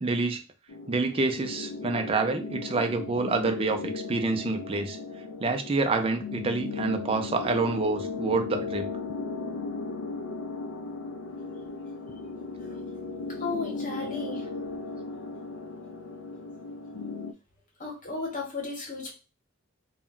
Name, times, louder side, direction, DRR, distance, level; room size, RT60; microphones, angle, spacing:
voice 1, 0.0-0.4 0.9-5.0 5.4-8.9, right 3 dB, 25° right, 6 dB, 0.4 m, -27 dB
sound 1, 0.7-17.3, left 4 dB, 70° left, 0.3 m, -36 dB
voice 2, 13.4-14.5 17.8-19.1, left 4 dB, 40° left, 0 dB, 0.9 m, -34 dB
2.2 x 2.1 x 3.7 m, 0.30 s
head